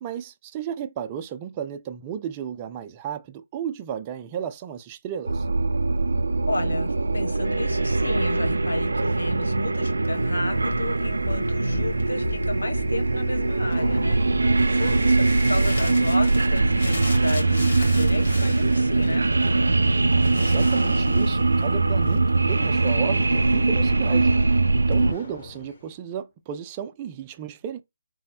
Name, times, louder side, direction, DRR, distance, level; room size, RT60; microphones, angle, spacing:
voice 1, 0.0-5.5 20.4-27.8, right 9 dB, 25° right, 0.4 m, -33 dB
sound 1, 5.3-25.1, right 3 dB, 90° right, 0.4 m, -22 dB
voice 2, 6.5-19.3, left 2 dB, 85° left, 1.3 m, -32 dB
sound 2, 10.1-23.7, left 3 dB, 60° left, 2.4 m, -39 dB
sound 3, 13.1-14.8 19.8-21.4 24.2-26.0, left 2 dB, 40° left, 1.7 m, -44 dB
4.0 x 2.1 x 4.2 m
figure-of-eight pair, 155°, 0 cm